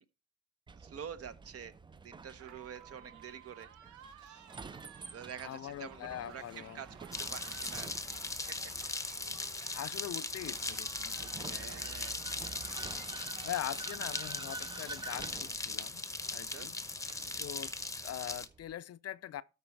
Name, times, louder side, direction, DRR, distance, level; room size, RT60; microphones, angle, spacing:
Vehicle, 0.7-18.7, right 4 dB, 15° right, 0.3 m, -49 dB
voice 1, 0.8-1.7 2.0-3.7 4.2-4.5 5.1-8.6 11.5-12.3 16.4-16.7, right 8 dB, 50° right, 0.9 m, -47 dB
sound 1, 2.4-13.8, right 9 dB, 80° right, 1.0 m, -56 dB
voice 2, 5.4-6.8 9.7-11.8 12.8-16.1 16.3-16.8 17.1-17.7 18.0-19.4, left 12 dB, 55° left, 0.5 m, -43 dB
sound 2, 7.1-18.5, left 2 dB, 10° left, 0.8 m, -39 dB
13.0 x 4.3 x 4.5 m
cardioid pair, 90°, 30 cm